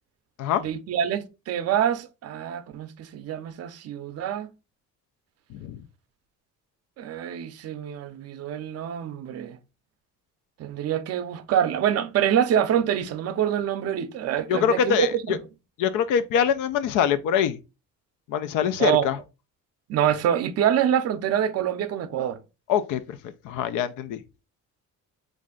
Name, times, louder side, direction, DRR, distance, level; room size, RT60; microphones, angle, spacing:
voice 1, 0.6-4.5 7.0-9.6 10.6-15.4 18.8-19.1 19.9-22.4, right 9 dB, 55° right, 0.5 m, -26 dB
voice 2, 5.5-5.8 14.5-15.4 15.8-17.6 18.3-19.2 22.7-23.2 23.4-24.2, left 8 dB, 90° left, 0.5 m, -24 dB
3.2 x 2.5 x 3.7 m
cardioid pair, 90°, 30 cm